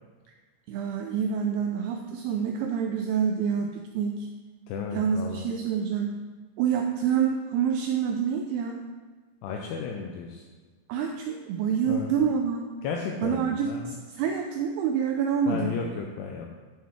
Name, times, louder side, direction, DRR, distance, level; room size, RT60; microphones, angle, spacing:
voice 1, 0.7-4.3 4.9-6.2 6.6-8.8 10.9-12.6 13.2-15.7, right 7 dB, 85° right, 3 dB, 2.3 m, -27 dB
voice 2, 4.7-5.5 9.4-10.4 11.9-12.3 12.8-14.0 15.5-16.6, left 6 dB, 80° left, 2 dB, 2.5 m, -34 dB
11.0 x 6.3 x 3.5 m, 1.3 s
omnidirectional pair, 5.1 m